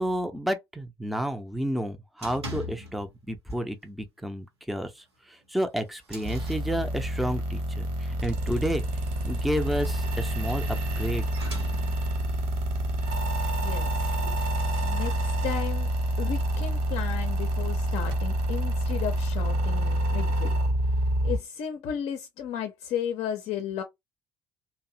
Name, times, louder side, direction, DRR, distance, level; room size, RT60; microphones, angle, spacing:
voice 1, 0.0-8.8 9.2-11.3, equal, ahead, 0.5 m, -31 dB
sound 1, 2.2-3.2 3.5-3.9 4.2-4.3 4.7-4.8 5.4-7.4 8.9-12.3, left 1 dB, 85° right, 0.9 m, -43 dB
sound 2, 6.2-21.4, right 1 dB, 55° right, 1.1 m, -27 dB
voice 2, 13.6-13.9 14.3-14.4 14.8-15.9 16.2-20.5 21.2-23.8, left 9 dB, 50° left, 0.5 m, -34 dB
2.6 x 2.0 x 2.5 m
figure-of-eight pair, 55°, 13 cm